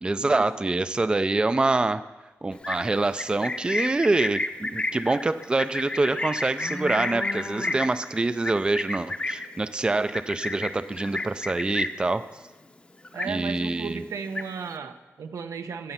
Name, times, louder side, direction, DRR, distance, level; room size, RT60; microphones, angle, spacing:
voice 1, 0.0-2.1 2.4-12.3 13.3-14.0, right 2 dB, 15° right, 12 dB, 0.3 m, -25 dB
Livestock farm animals working animals, 2.5-12.1 12.5-12.8 13.0-13.7 14.0-14.7, left 2 dB, 20° left, 0.7 m, -31 dB
voice 2, 13.1-15.9, right 5 dB, 90° right, 7 dB, 0.9 m, -35 dB
15.0 x 8.7 x 5.6 m, 1.2 s
wide cardioid pair, 140°, 5 cm